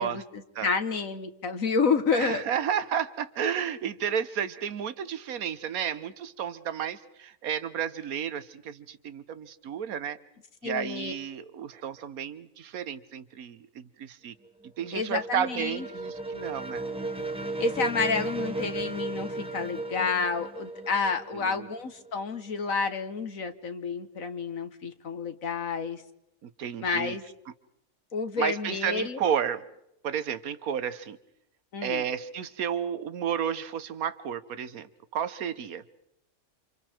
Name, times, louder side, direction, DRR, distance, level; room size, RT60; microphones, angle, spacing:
voice 1, 0.0-2.5 10.6-11.1 14.9-15.9 17.6-26.0 26.8-27.2 28.1-29.3 31.7-32.0, left 5 dB, 65° left, 8 dB, 1.8 m, -30 dB
voice 2, 2.1-10.2 10.6-14.3 14.8-16.8 21.3-21.7 26.4-27.2 28.4-29.6 30.0-31.2 31.8-35.8, right 8 dB, 75° right, 14 dB, 1.5 m, -32 dB
sound 1, 14.5-22.2, right 2 dB, 5° right, 1.7 m, -35 dB
29.0 x 27.5 x 4.5 m, 0.81 s
omnidirectional pair, 1.5 m